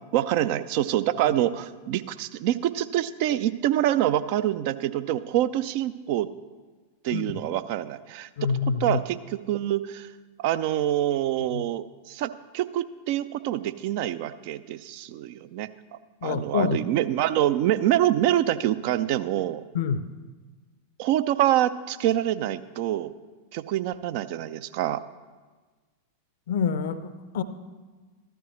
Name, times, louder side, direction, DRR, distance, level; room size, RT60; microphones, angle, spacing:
voice 1, 0.1-6.3 7.0-8.5 8.8-10.1 10.4-15.7 16.2-19.6 21.0-23.1 23.5-25.0, right 12 dB, 45° right, 13 dB, 0.4 m, -26 dB
voice 2, 8.4-9.0 11.5-11.7 16.2-16.8 19.7-20.1 26.5-27.4, left 6 dB, 55° left, 14 dB, 0.6 m, -27 dB
14.0 x 12.5 x 3.1 m, 1.3 s
figure-of-eight pair, 90°, 0 cm